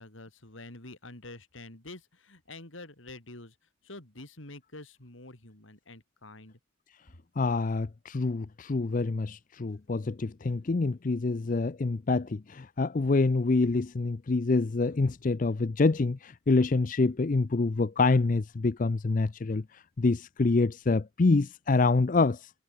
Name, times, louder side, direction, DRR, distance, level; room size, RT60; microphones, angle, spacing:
voice 1, 0.0-3.6 3.8-6.6, left 2 dB, 70° left, 3.6 m, -47 dB
voice 2, 7.4-22.5, left 3 dB, 40° left, 0.5 m, -26 dB
head